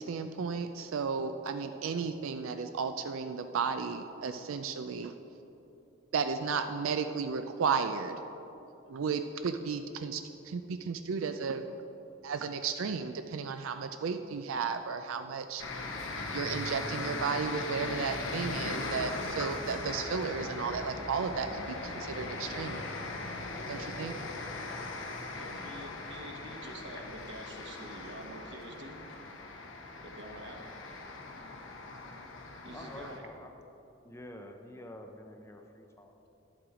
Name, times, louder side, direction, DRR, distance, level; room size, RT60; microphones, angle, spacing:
voice 1, 0.0-5.1 6.1-8.2 8.9-11.6 12.2-22.9 23.7-24.1, right 5 dB, 75° right, 8 dB, 0.4 m, -34 dB
sound 1, 15.6-33.2, left 3 dB, 65° left, 1.0 m, -39 dB
voice 2, 25.4-29.0 30.0-30.6 32.6-33.3, right 1 dB, 55° right, 2 dB, 1.1 m, -47 dB
voice 3, 32.7-33.5 34.0-36.3, left 1 dB, 15° left, 4 dB, 0.5 m, -47 dB
11.5 x 7.7 x 4.9 m, 3.0 s
head